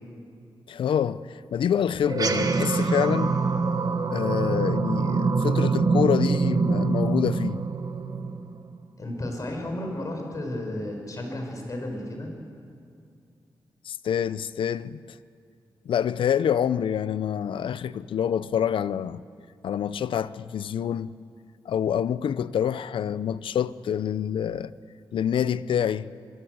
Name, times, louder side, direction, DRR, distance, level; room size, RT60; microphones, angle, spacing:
voice 1, 0.7-3.4 4.1-7.6 13.8-15.2 15.8-19.2 19.6-21.1 21.7-24.7 25.1-26.1, left 9 dB, 90° left, 0.6 m, -26 dB
sound 1, 2.0-8.8, right 4 dB, 45° right, 1.5 m, -24 dB
voice 2, 9.0-12.3, left 1 dB, 40° left, 5.6 m, -33 dB
25.0 x 22.0 x 8.0 m
wide cardioid pair, 110°, 8 cm